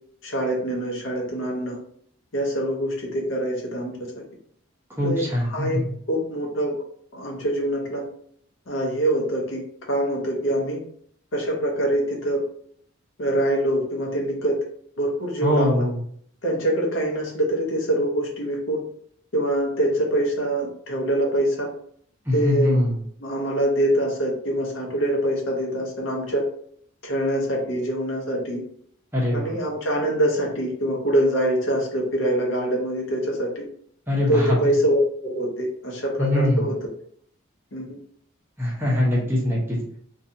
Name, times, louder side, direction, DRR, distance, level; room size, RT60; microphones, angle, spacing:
voice 1, 0.2-1.8 2.3-3.9 5.0-5.8 6.1-6.7 7.1-8.0 8.7-9.6 9.9-10.8 11.3-12.4 13.2-14.6 15.0-15.9 16.4-18.8 19.3-21.7 22.3-22.9 23.2-26.4 27.0-28.6 29.3-33.7 34.3-36.8 37.7-38.0, right 1 dB, 65° left, 0 dB, 0.7 m, -24 dB
voice 2, 5.0-5.8 15.4-15.9 22.3-22.9 29.1-29.6 34.1-34.6 36.2-36.7 38.6-39.8, left 1 dB, 10° right, -5 dB, 0.7 m, -22 dB
2.6 x 2.3 x 2.6 m, 0.63 s
head